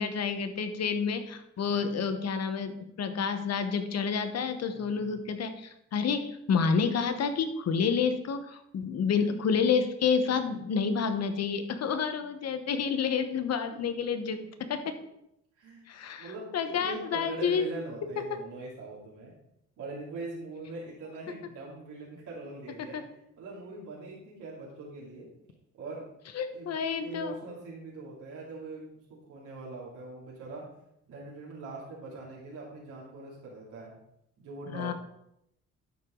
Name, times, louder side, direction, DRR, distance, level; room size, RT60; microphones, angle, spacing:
voice 1, 0.0-2.7 3.0-14.4 14.7-14.9 15.9-17.6 18.2-18.3 22.9-23.0 26.3-27.4 34.7-34.9, left 6 dB, 55° left, 8 dB, 1.0 m, -29 dB
voice 2, 4.7-5.2 13.7-14.0 14.4-14.7 15.6-15.9 16.2-19.3 19.8-23.0 23.4-25.3 25.7-26.1 26.5-26.7 27.0-30.7 31.0-33.9 34.4-34.9, right 3 dB, 80° right, -6 dB, 2.8 m, -42 dB
12.0 x 4.9 x 3.8 m, 0.79 s
cardioid pair, 90°, 30 cm